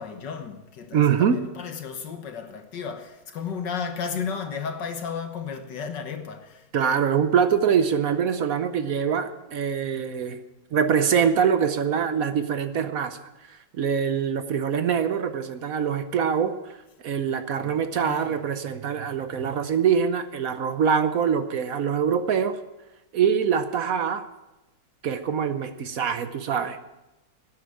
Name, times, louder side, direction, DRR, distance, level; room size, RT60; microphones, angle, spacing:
voice 1, 0.0-6.7 17.6-18.3, left 6 dB, 65° left, 1.8 m, -34 dB
voice 2, 0.9-1.4 6.7-10.4 10.7-16.8 17.0-22.6 23.1-24.2 25.0-26.8, right 7 dB, 60° right, 1.0 m, -24 dB
12.5 x 9.9 x 8.8 m
omnidirectional pair, 2.1 m